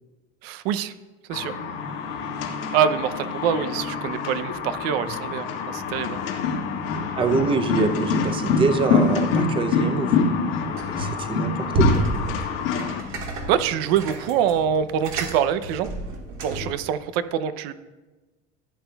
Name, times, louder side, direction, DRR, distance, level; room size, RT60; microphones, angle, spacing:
voice 1, 0.4-0.9 1.3-1.5 2.7-6.2 13.5-15.9 16.4-17.7, right 9 dB, 75° right, 13 dB, 0.6 m, -25 dB
sound 1, 1.3-13.0, left 5 dB, 75° left, 1.8 m, -26 dB
sound 2, 1.7-16.2, left 6 dB, 45° left, 1.5 m, -40 dB
voice 2, 7.2-10.2 11.0-12.0, right 4 dB, 15° right, 7 dB, 0.6 m, -25 dB
sound 3, 10.8-11.3 11.7-16.8, right 1 dB, 45° right, 1.8 m, -28 dB
15.5 x 8.8 x 2.3 m, 1.2 s
cardioid pair, 155°, 29 cm